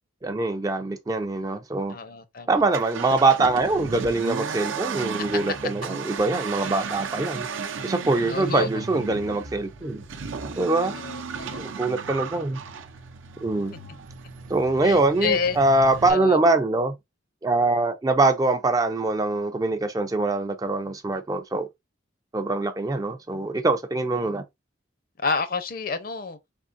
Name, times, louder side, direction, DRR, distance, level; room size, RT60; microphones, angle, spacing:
voice 1, 0.2-1.9 2.5-7.5 7.8-10.0 10.6-10.9 11.6-12.6 13.4-13.7 14.5-16.9 17.4-21.7 22.3-24.4, right 2 dB, 20° right, 0.3 m, -23 dB
voice 2, 1.9-2.5 5.2-5.4 8.3-8.7 10.8-11.7 14.8-15.6 16.1-16.4 25.2-26.4, left 5 dB, 50° left, 0.6 m, -29 dB
Accelerating revving vroom, 2.6-16.1, right 5 dB, 90° right, 0.6 m, -35 dB
4.4 x 3.6 x 2.5 m
head